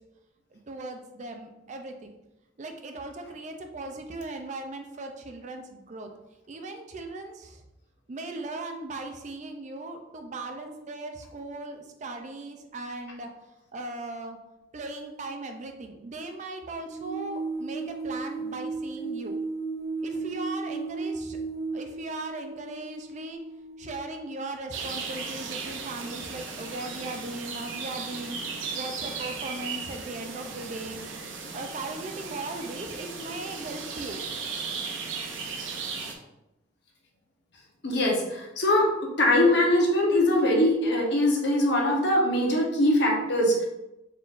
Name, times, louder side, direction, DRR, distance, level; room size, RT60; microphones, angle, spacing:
voice 1, 0.5-2.1 2.6-6.1 6.5-7.6 8.1-13.3 13.7-14.4 14.7-19.3 20.0-21.4 21.7-23.4 23.8-28.4 28.8-31.0 31.5-34.2, right 2 dB, 40° right, 5 dB, 0.4 m, -38 dB
sound 1, 16.9-24.0, right 4 dB, 35° left, 0.7 m, -35 dB
sound 2, 24.7-36.1, right 5 dB, 85° right, 0.6 m, -36 dB
voice 2, 37.8-38.9 39.2-43.7, left 1 dB, 60° left, -1 dB, 1.0 m, -22 dB
4.3 x 3.7 x 2.5 m, 0.93 s
head